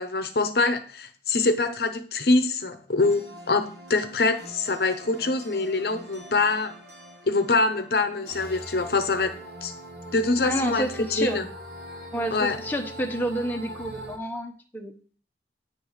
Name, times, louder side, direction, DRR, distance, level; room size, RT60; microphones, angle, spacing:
voice 1, 0.0-3.2 3.5-6.7 7.3-9.3 9.6-9.7 10.1-10.9 11.2-11.4 12.3-12.6, left 3 dB, 60° left, 8 dB, 0.8 m, -24 dB
sound 1, 3.0-14.2, right 1 dB, 65° right, 1.6 m, -42 dB
voice 2, 10.4-11.4 12.1-14.9, right 1 dB, 10° left, 1 dB, 0.9 m, -29 dB
9.1 x 3.5 x 6.3 m, 0.41 s
head